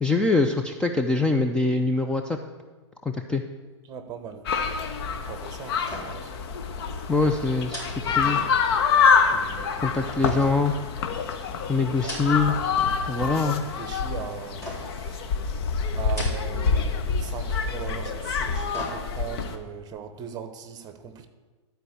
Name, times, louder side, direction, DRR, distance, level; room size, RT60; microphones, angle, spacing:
voice 1, 0.0-2.4 3.0-3.4 7.1-8.4 9.8-10.7 11.7-12.6 13.1-13.6, left 3 dB, 5° left, 4 dB, 0.4 m, -24 dB
voice 2, 3.8-4.4 5.2-6.3 9.3-10.1 13.2-15.3 15.9-21.3, right 7 dB, 25° right, 9 dB, 1.1 m, -39 dB
sound 1, 4.5-19.6, left 5 dB, 55° left, 1.1 m, -26 dB
sound 2, 5.8-6.4 6.6-6.8 7.7-8.8 10.2-11.3 11.9-12.6 13.0-13.5 14.6-15.1 16.0-16.7 17.0-17.2 18.3-19.4 19.8-19.9, equal, 20° left, 4.1 m, -39 dB
12.5 x 4.6 x 8.1 m, 1.3 s
hypercardioid pair, 130°, 15 cm